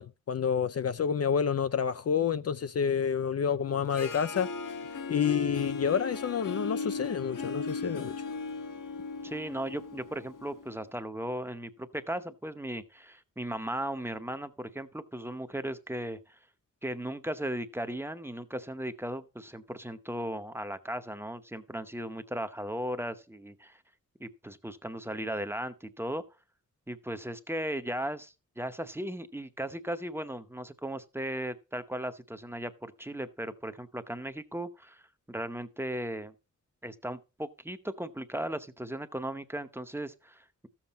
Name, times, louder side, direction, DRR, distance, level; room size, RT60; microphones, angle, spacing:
voice 1, 0.0-4.5 5.1-8.1, left 7 dB, 55° left, 0.5 m, -29 dB
Harp, 3.7-10.8, left 4 dB, 90° left, 1.5 m, -37 dB
voice 2, 9.2-16.4 16.8-23.8 24.2-26.2 26.9-35.0 35.3-36.3 36.8-40.7, right 1 dB, 10° right, 0.8 m, -37 dB
14.0 x 7.3 x 4.2 m
wide cardioid pair, 150°, 31 cm